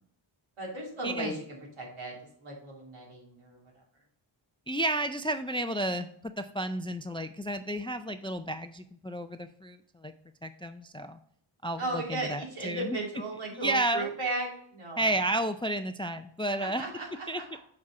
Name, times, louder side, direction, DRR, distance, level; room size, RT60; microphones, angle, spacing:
voice 1, 0.6-2.1 2.4-3.6 11.8-15.1 16.6-17.6, right 2 dB, 90° right, -3 dB, 2.8 m, -36 dB
voice 2, 4.7-6.1 6.4-10.1 10.4-11.2 11.6-13.0 13.6-14.1 15.0-16.8 17.3-17.4, right 1 dB, 10° left, 9 dB, 0.3 m, -32 dB
7.4 x 4.3 x 4.7 m, 0.64 s
wide cardioid pair, 80°, 48 cm